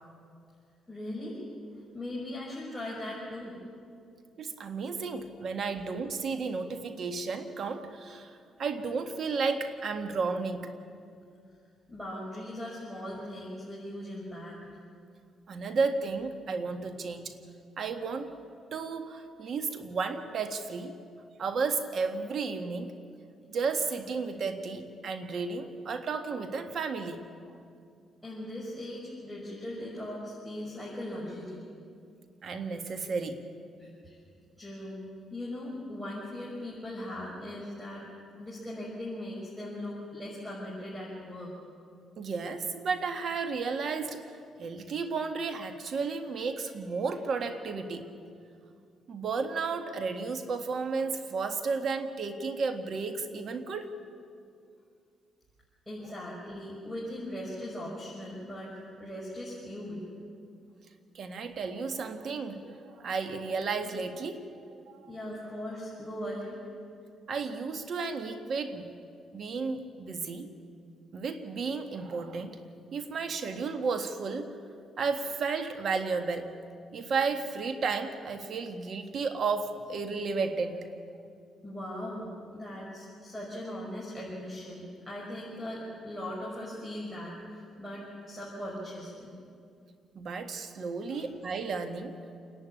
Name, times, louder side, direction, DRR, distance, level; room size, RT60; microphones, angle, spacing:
voice 1, 0.9-1.4 1.9-3.6 11.9-14.6 28.2-31.6 33.8-34.2 34.6-35.0 35.3-38.0 38.4-41.6 55.9-60.1 65.1-66.6 81.6-87.4 87.8-89.4 91.1-91.2, left 1 dB, 5° right, -6 dB, 6.3 m, -39 dB
voice 2, 4.4-10.7 15.5-17.4 17.8-18.3 18.7-20.9 21.4-23.0 23.5-27.2 32.4-33.4 42.2-48.1 49.1-53.9 61.1-65.1 67.3-68.9 69.3-70.5 71.1-72.6 72.9-74.5 75.0-76.5 76.9-80.9 90.1-92.1, right 4 dB, 55° right, 7 dB, 1.7 m, -33 dB
28.5 x 11.0 x 9.9 m, 2.4 s
cardioid pair, 90°, 0 cm